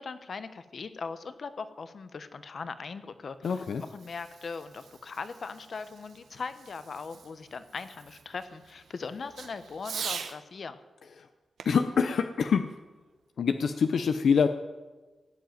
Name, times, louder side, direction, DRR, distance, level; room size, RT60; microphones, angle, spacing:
voice 1, 0.0-3.4 3.9-10.8, left 5 dB, 55° left, 12 dB, 1.0 m, -39 dB
Fireworks, 3.1-10.4 11.6-13.2, right 6 dB, 85° right, 1.1 m, -44 dB
voice 2, 3.4-3.8 11.2-11.3 11.6-12.8 13.4-14.5, left 6 dB, 75° left, 8 dB, 0.7 m, -25 dB
17.0 x 7.8 x 9.3 m, 1.3 s
wide cardioid pair, 120°, 0 cm